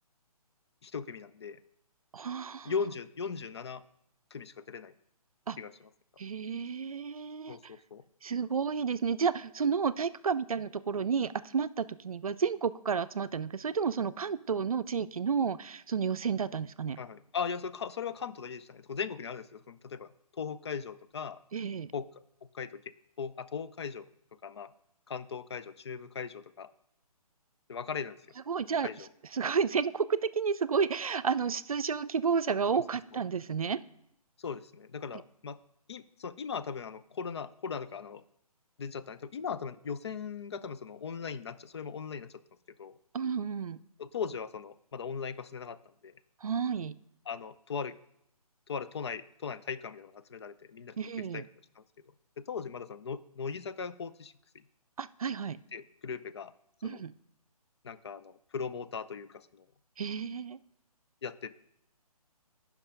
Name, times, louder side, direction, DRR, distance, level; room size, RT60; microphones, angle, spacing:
voice 1, 0.8-1.6 2.6-3.8 4.3-4.9 5.6-5.7 7.5-8.0 17.0-21.4 21.9-22.1 22.5-24.1 24.4-24.7 25.1-26.7 27.7-28.2 28.8-29.1 32.7-32.8 34.4-35.6 35.9-38.2 38.8-42.3 42.8-42.9 44.0-45.8 46.0-46.1 47.3-48.0 48.7-51.0 51.3-51.4 51.8-51.9 52.4-54.3 55.7-56.5 56.8-57.0 57.8-59.6 61.2-61.5, left 6 dB, 45° left, 14 dB, 0.5 m, -38 dB
voice 2, 2.1-2.7 5.5-5.6 6.2-7.6 8.2-17.0 21.5-21.9 28.5-33.8 43.1-43.8 46.4-47.0 51.0-51.5 55.0-55.6 56.8-57.1 60.0-60.6, right 6 dB, 65° right, 14 dB, 0.5 m, -31 dB
9.8 x 5.9 x 5.2 m, 0.76 s
figure-of-eight pair, 140°, 19 cm